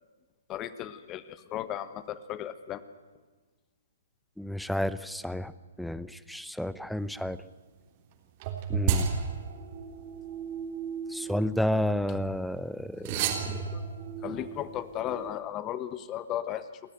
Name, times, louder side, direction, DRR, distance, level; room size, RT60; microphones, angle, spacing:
voice 1, 0.5-2.8 13.4-13.8 14.2-16.7, left 11 dB, 25° left, 15 dB, 1.2 m, -35 dB
voice 2, 4.4-5.5 5.8-7.4 8.7-9.1 11.1-13.3, left 1 dB, ahead, 18 dB, 0.7 m, -31 dB
sound 1, 8.4-12.2 13.0-15.3, right 7 dB, 35° right, 3.4 m, -33 dB
28.5 x 13.0 x 9.2 m, 1.4 s
figure-of-eight pair, 125°, 0 cm